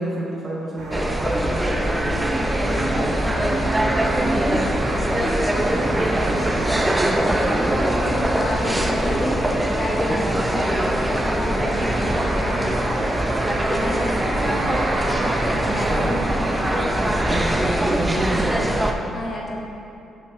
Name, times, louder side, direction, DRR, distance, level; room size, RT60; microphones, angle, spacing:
voice 1, 0.0-2.5 2.8-5.2 5.9-7.1 8.8-8.9 14.4-14.7 15.6-16.2 17.2-18.8, right 1 dB, 25° right, -5 dB, 1.1 m, -30 dB
sound 1, 0.8-17.5, right 1 dB, 70° right, 1.3 m, -32 dB
sound 2, 0.9-18.9, right 1 dB, 10° right, 0.5 m, -22 dB
voice 2, 2.7-3.1 4.2-4.7 7.3-13.3 13.7-14.6 15.4-16.5 19.1-19.5, left 1 dB, 45° left, -1 dB, 1.1 m, -31 dB
6.7 x 5.9 x 3.6 m, 2.7 s
cardioid pair, 90°, 0 cm